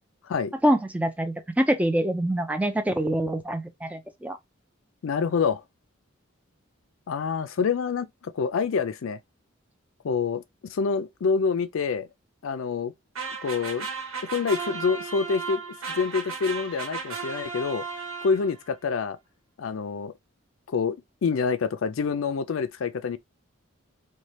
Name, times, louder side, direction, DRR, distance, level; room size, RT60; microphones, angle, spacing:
voice 1, 0.6-4.4, right 1 dB, 5° right, 0.4 m, -25 dB
voice 2, 5.0-5.6 7.1-9.2 10.0-12.1 12.4-12.9 13.4-13.9 14.2-15.6 15.9-17.8 18.2-19.2 19.6-20.1 20.7-21.0 21.2-23.2, left 5 dB, 75° left, 0.4 m, -27 dB
sound 1, 13.2-18.7, right 5 dB, 85° right, 1.1 m, -35 dB
3.2 x 2.2 x 4.1 m
head